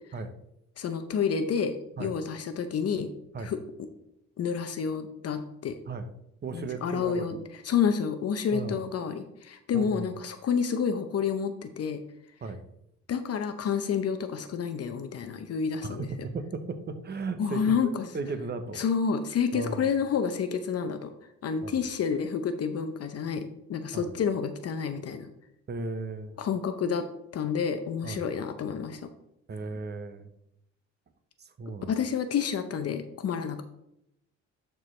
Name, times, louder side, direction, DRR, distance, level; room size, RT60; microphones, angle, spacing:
voice 1, 0.8-3.1 3.4-3.6 4.4-5.8 6.5-7.4 7.6-12.0 13.1-16.1 17.4-18.1 18.7-21.1 21.4-23.4 23.7-25.3 26.4-27.1 27.3-29.1 31.9-33.6, left 6 dB, 55° left, 8 dB, 0.7 m, -29 dB
voice 2, 6.4-7.4 8.5-8.8 9.7-10.1 12.4-12.6 15.8-17.7 18.1-18.8 19.5-19.9 21.6-21.7 23.9-24.1 25.7-26.4 28.0-28.2 29.5-30.3 31.4-31.9, right 3 dB, 35° right, 9 dB, 0.9 m, -36 dB
10.5 x 4.6 x 3.2 m, 0.81 s
cardioid pair, 90°, 30 cm